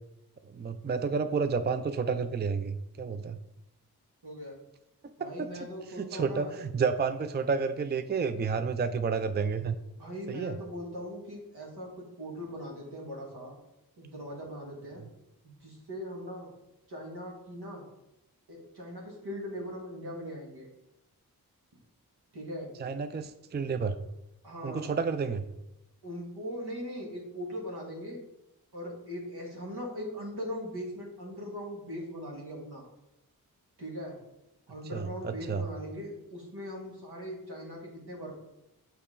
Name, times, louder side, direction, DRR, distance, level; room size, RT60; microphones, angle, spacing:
voice 1, 0.5-3.4 5.2-5.3 6.0-9.8 10.3-10.6 22.8-24.0 24.6-25.4 34.9-35.6, right 5 dB, 30° right, 9 dB, 0.4 m, -30 dB
voice 2, 4.2-4.6 5.2-6.5 10.0-11.9 12.2-13.6 14.0-15.0 15.4-16.5 16.9-17.8 18.5-20.7 22.3-22.7 24.4-24.9 26.0-28.2 28.7-32.8 33.8-34.1 34.7-38.3, equal, 85° right, -2 dB, 1.9 m, -40 dB
6.5 x 4.6 x 3.7 m, 0.88 s
cardioid pair, 40°, 38 cm